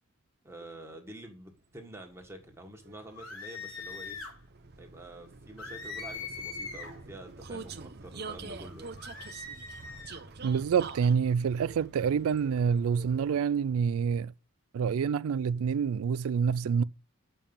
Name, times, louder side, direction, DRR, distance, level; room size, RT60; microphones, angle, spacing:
voice 1, 0.4-4.2 4.8-9.0, right 1 dB, 10° right, 1.6 m, -47 dB
Vehicle, 2.0-13.6, right 4 dB, 50° right, 0.7 m, -46 dB
sound 1, 3.2-4.4 5.6-7.0 9.0-10.2, left 4 dB, 80° left, 3.2 m, -41 dB
voice 2, 10.4-14.3 14.7-16.8, right 6 dB, 80° right, 0.3 m, -27 dB
7.1 x 5.6 x 7.0 m
head